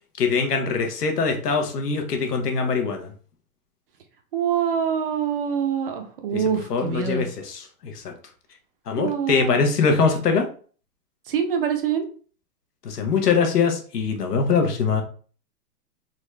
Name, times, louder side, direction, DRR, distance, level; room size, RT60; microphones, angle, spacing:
voice 1, 0.2-3.1 6.3-6.4 6.7-8.1 8.9-10.5 12.8-15.0, left 5 dB, 75° left, 4 dB, 1.2 m, -23 dB
voice 2, 4.3-7.2 9.0-9.6 11.3-12.1, right 8 dB, 40° right, 5 dB, 0.6 m, -25 dB
4.0 x 2.4 x 3.2 m, 0.42 s
hypercardioid pair, 150°, 47 cm